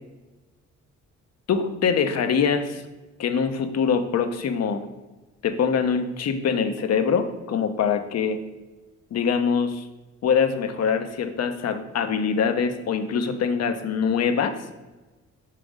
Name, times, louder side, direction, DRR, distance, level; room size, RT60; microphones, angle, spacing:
voice 1, 1.5-2.8 3.2-4.8 5.4-8.4 9.1-9.8 10.2-14.6, left 6 dB, 55° left, 7 dB, 0.8 m, -23 dB
5.8 x 5.0 x 5.0 m, 1.1 s
cardioid pair, 90°, 30 cm